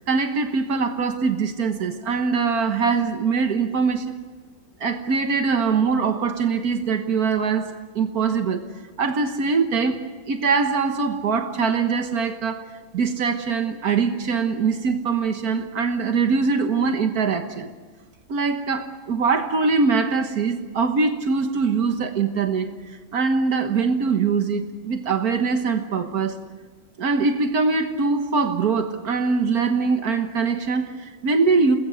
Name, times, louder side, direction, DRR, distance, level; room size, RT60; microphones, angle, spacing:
voice 1, 0.0-4.1 4.8-8.6 9.0-10.0 10.3-12.6 12.9-17.7 18.3-26.4 27.0-31.8, right 5 dB, 80° right, 6 dB, 1.8 m, -22 dB
29.0 x 20.5 x 6.4 m, 1.4 s
omnidirectional pair, 1.6 m